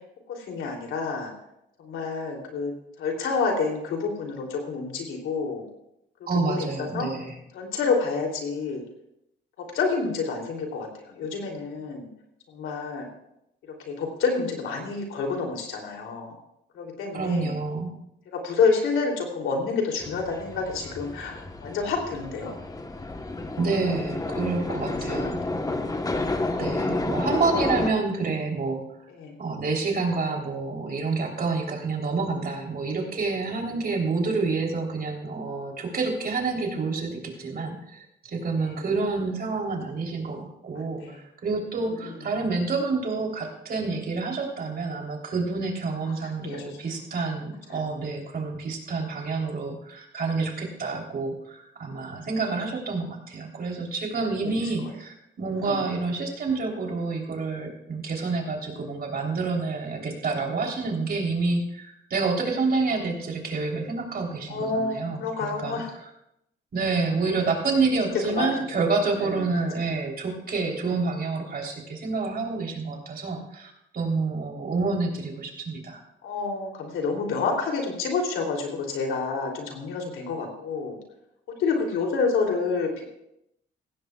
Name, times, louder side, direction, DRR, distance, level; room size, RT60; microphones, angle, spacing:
voice 1, 0.3-1.3 1.8-2.7 3.0-5.7 6.4-7.1 7.5-8.8 9.6-12.1 12.5-13.1 13.8-16.3 16.7-17.6 18.3-22.5 23.5-23.7 24.8-25.3 29.2-29.3 38.6-38.7 40.7-41.2 42.0-42.1 46.4-46.8 47.7-47.8 54.4-54.5 55.6-55.8 64.5-65.9 68.3-68.5 69.2-69.4 70.6-70.8 76.2-81.0 81.6-83.0, left 4 dB, 85° left, 1 dB, 3.0 m, -28 dB
voice 2, 6.3-7.3 17.1-17.9 23.6-25.4 26.6-28.8 29.4-65.8 66.7-76.0, right 3 dB, 50° right, 1 dB, 3.4 m, -28 dB
sound 1, 20.0-27.9, left 2 dB, 20° left, 1.1 m, -30 dB
16.5 x 15.5 x 2.4 m, 0.79 s
cardioid pair, 90°, 20 cm